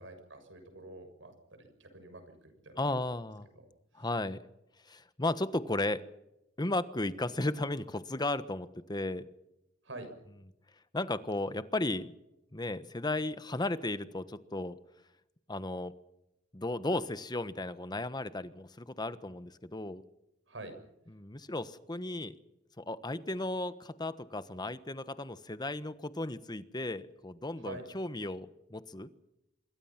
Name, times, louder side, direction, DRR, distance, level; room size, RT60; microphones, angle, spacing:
voice 1, 0.0-3.0 3.5-3.7 3.9-4.1 9.8-10.1 20.5-20.8 27.6-27.8, right 2 dB, 80° right, 7 dB, 6.9 m, -47 dB
voice 2, 2.8-3.5 3.9-4.4 4.9-6.0 6.6-9.3 10.9-12.1 12.5-14.8 15.5-15.9 16.5-20.0 21.1-22.3 22.8-29.1, left 2 dB, 20° left, 13 dB, 1.2 m, -35 dB
26.5 x 22.0 x 5.9 m, 0.88 s
head